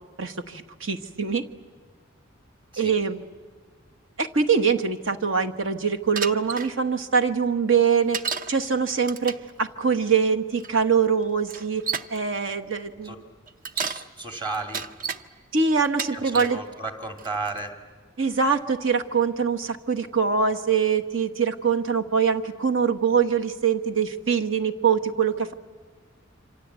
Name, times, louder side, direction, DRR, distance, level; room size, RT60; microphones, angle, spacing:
voice 1, 0.2-1.4 2.8-3.2 4.2-8.2 8.5-11.8 12.1-13.1 15.5-16.6 18.2-25.5, right 6 dB, 65° right, 7 dB, 1.3 m, -23 dB
Bicycle, 6.2-6.7 8.1-8.5 9.0-9.5 10.6-10.7 11.5-12.2 13.5-14.1 14.5-15.2 15.8-16.6 17.2-17.6, right 6 dB, 40° right, 0.7 m, -31 dB
voice 2, 13.7-14.9 16.1-17.7, right 3 dB, 25° right, 5 dB, 2.5 m, -33 dB
27.5 x 25.5 x 8.2 m, 1.5 s
head